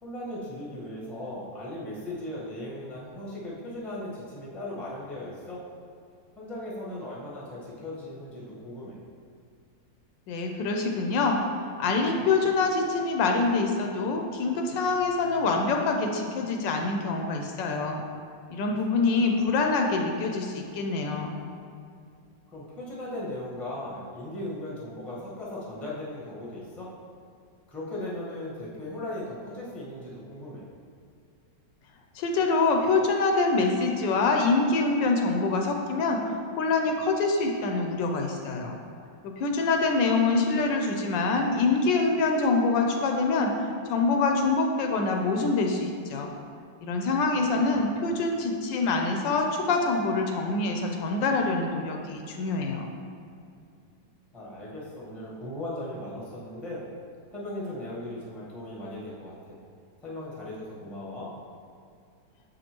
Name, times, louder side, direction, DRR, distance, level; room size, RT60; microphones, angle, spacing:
voice 1, 0.0-5.6 6.4-9.0 19.1-19.5 22.5-26.9 27.7-30.7 47.5-48.0 54.3-56.8 57.3-59.6 60.0-61.3, left 1 dB, ahead, -6 dB, 0.7 m, -38 dB
voice 2, 10.3-11.4 11.8-18.0 18.5-21.4 32.1-38.7 39.2-46.3 46.8-52.8, left 3 dB, 75° left, 2 dB, 1.2 m, -25 dB
7.0 x 5.2 x 2.9 m, 2.4 s
omnidirectional pair, 2.1 m